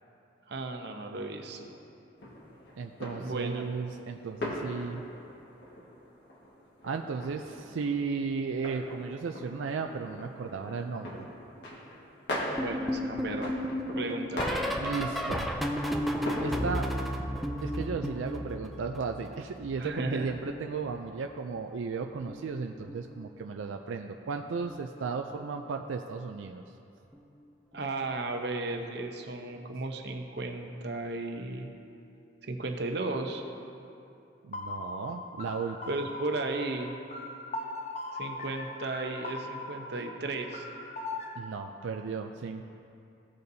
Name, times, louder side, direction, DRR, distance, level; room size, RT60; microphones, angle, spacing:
voice 1, 0.5-1.7 3.2-3.7 12.6-13.5 14.0-14.8 19.8-20.3 27.7-31.7 32.4-33.4 35.9-37.0 38.1-40.7, right 2 dB, 60° right, 4 dB, 0.8 m, -35 dB
sound 1, 2.2-17.0, left 1 dB, 60° left, 1.6 m, -40 dB
voice 2, 2.8-5.0 6.8-11.3 14.8-15.5 16.4-16.9 17.6-26.6 34.4-35.8 41.4-42.6, right 5 dB, 90° right, 5 dB, 0.4 m, -35 dB
sound 2, 12.6-19.3 19.6-21.2 22.2-22.6 22.8-23.2 24.7-25.0 25.3-25.6 27.1-27.2, equal, ahead, 0.4 m, -34 dB
sound 3, 34.5-41.4, left 2 dB, 35° left, 0.7 m, -40 dB
16.0 x 6.7 x 2.7 m, 2.7 s
head